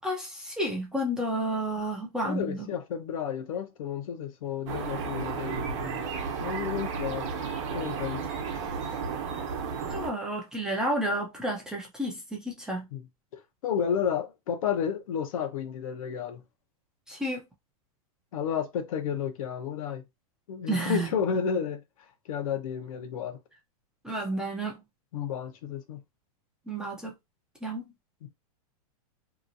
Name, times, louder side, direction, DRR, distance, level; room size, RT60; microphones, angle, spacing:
voice 1, 0.0-2.7 9.9-12.9 17.1-17.4 20.7-21.1 24.0-24.8 26.7-27.1 27.6-27.9, right 1 dB, 5° right, 0.5 m, -31 dB
voice 2, 2.2-6.1 6.4-7.3 7.7-8.2 12.9-13.1 13.3-16.4 18.3-20.0 20.5-21.8 22.3-23.4 25.1-26.0 28.2-28.3, left 7 dB, 65° left, 0.8 m, -32 dB
sound 1, 4.7-10.1, right 5 dB, 50° right, 0.9 m, -33 dB
2.9 x 2.4 x 2.6 m
supercardioid pair, 160°, 19 cm